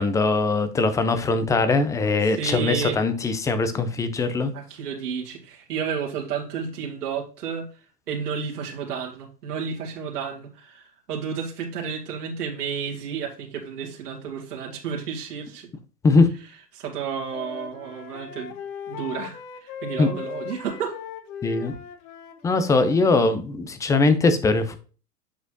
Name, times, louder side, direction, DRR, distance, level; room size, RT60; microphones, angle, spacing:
voice 1, 0.0-4.5 16.0-16.3 20.0-20.1 21.4-21.7 22.4-24.8, left 3 dB, 5° left, 10 dB, 0.4 m, -21 dB
voice 2, 2.2-3.0 4.5-7.8 8.1-15.7 16.7-18.5 18.9-21.0, right 6 dB, 75° right, -2 dB, 2.1 m, -31 dB
Wind instrument woodwind instrument, 16.9-23.3, left 7 dB, 50° left, 1.2 m, -38 dB
8.1 x 6.0 x 2.6 m, 0.36 s
hypercardioid pair, 105°, 47 cm